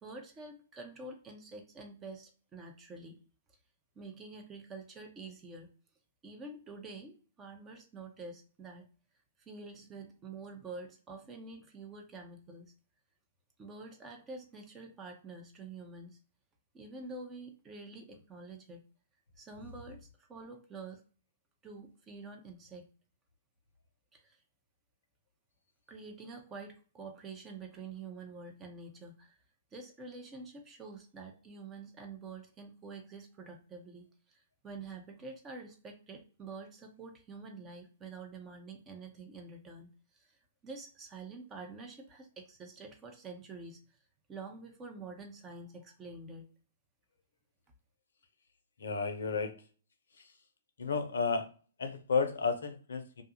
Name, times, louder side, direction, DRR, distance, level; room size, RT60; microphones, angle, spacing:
voice 1, 0.0-3.2 4.0-5.7 6.2-8.9 9.4-12.7 13.6-16.2 16.7-18.8 19.4-21.0 21.6-22.9 24.1-24.4 25.9-29.4 29.7-40.3 40.6-43.8 44.3-46.5, right 3 dB, 20° right, 2 dB, 0.6 m, -47 dB
voice 2, 48.8-49.5 50.8-51.5 51.8-53.2, left 5 dB, 65° left, 7 dB, 0.5 m, -32 dB
2.6 x 2.3 x 2.7 m, 0.38 s
figure-of-eight pair, 110°, 0 cm